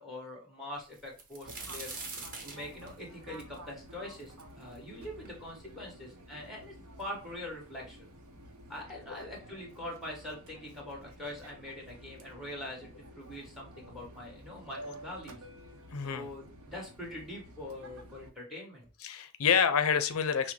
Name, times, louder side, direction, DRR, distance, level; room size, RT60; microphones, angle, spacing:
voice 1, 0.0-1.9 2.4-8.0 8.7-15.4 16.0-18.9, left 1 dB, ahead, -1 dB, 1.5 m, -43 dB
sound 1, 0.9-4.8 5.2-5.3 6.1-6.2 6.5-7.1 8.0-8.1 8.5-8.7, right 3 dB, 40° right, 1.1 m, -44 dB
Fixed-wing aircraft airplane, 1.4-18.3, right 1 dB, 90° right, 0.8 m, -51 dB
voice 2, 15.9-16.3 19.0-20.5, left 7 dB, 80° left, 11 dB, 0.5 m, -28 dB
5.9 x 2.1 x 3.1 m, 0.33 s
head